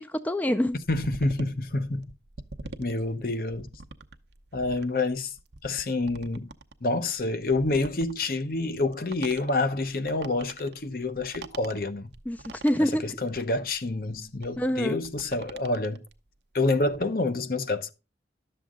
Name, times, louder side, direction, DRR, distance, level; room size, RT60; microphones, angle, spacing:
voice 1, 0.0-0.8 12.3-13.2 14.6-15.0, equal, 10° left, 0.4 m, -26 dB
sound 1, 0.7-16.2 16.6-17.0, right 3 dB, 70° right, 0.8 m, -44 dB
voice 2, 0.9-2.1 2.8-3.7 4.5-5.3 5.6-6.5 6.8-12.1 12.8-16.0 16.5-17.9, left 2 dB, 55° left, 0.8 m, -28 dB
11.5 x 6.9 x 3.7 m
head